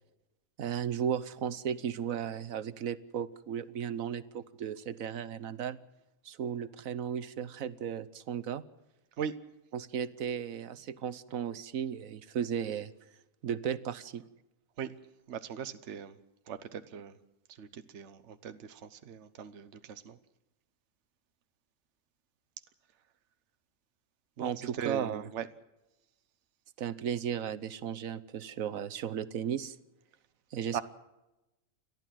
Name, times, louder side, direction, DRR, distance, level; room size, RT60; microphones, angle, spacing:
voice 1, 0.6-5.8 6.2-8.6 9.7-12.9 13.4-14.2 24.4-24.6 24.8-25.2 26.8-29.8 30.5-30.8, right 8 dB, 80° right, 1.3 m, -35 dB
voice 2, 15.3-16.2 16.5-17.2 17.5-20.2 24.4-25.5 30.7-30.8, right 8 dB, 60° right, 1.2 m, -39 dB
30.0 x 12.5 x 7.6 m
omnidirectional pair, 1.4 m